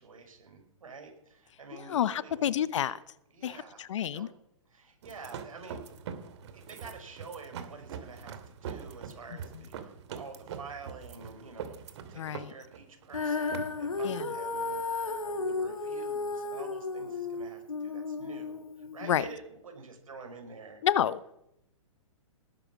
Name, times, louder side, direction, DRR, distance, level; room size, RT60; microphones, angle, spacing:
voice 1, 0.0-2.6 3.3-4.3 4.7-5.8 6.5-11.8 12.1-20.8, right 4 dB, 75° right, 4 dB, 5.5 m, -48 dB
voice 2, 1.9-3.0 3.4-4.3 12.2-12.5 14.0-14.2 19.0-19.2 20.8-21.3, left 10 dB, 60° left, 19 dB, 0.8 m, -29 dB
sound 1, 5.0-15.7, right 7 dB, 55° right, 2.4 m, -44 dB
Female singing, 13.1-19.4, left 3 dB, 90° left, 2.2 m, -34 dB
19.5 x 11.0 x 6.2 m, 0.82 s
hypercardioid pair, 125°, 17 cm